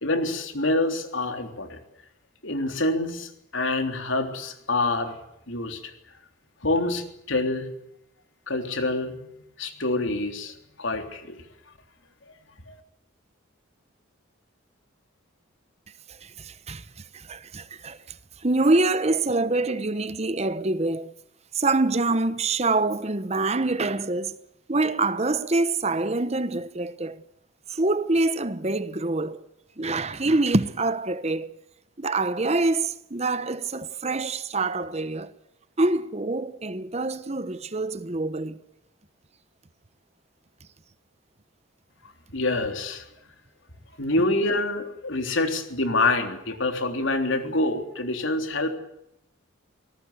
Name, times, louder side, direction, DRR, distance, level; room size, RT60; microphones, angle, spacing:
voice 1, 0.0-1.8 2.4-5.2 5.5-5.8 6.6-7.7 8.5-9.2 9.6-11.4 12.7-12.8 42.3-43.1 44.0-48.8, left 2 dB, 70° left, 3.5 m, -26 dB
voice 2, 16.2-16.8 17.1-18.0 18.4-21.1 21.5-24.4 24.7-27.2 27.7-29.4 29.8-31.6 32.0-35.3 35.8-38.6, right 2 dB, 30° right, 1.0 m, -25 dB
26.0 x 19.0 x 8.3 m
head